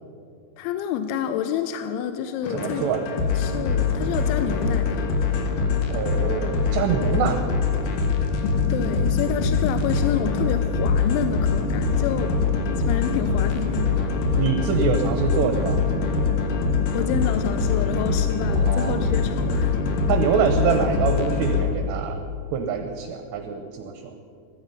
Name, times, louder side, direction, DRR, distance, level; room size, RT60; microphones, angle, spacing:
voice 1, 0.6-2.9 3.3-5.1 8.7-12.4 12.7-14.2 16.9-19.7, left 9 dB, 85° left, 9 dB, 2.9 m, -28 dB
sound 1, 2.4-21.6, left 4 dB, 65° left, 2.3 m, -23 dB
voice 2, 2.5-3.0 5.9-7.4 14.4-15.8 18.6-19.0 20.1-22.2 22.5-24.1, right 7 dB, 75° right, 5 dB, 2.6 m, -25 dB
15.5 x 13.5 x 5.5 m, 2.5 s
omnidirectional pair, 5.6 m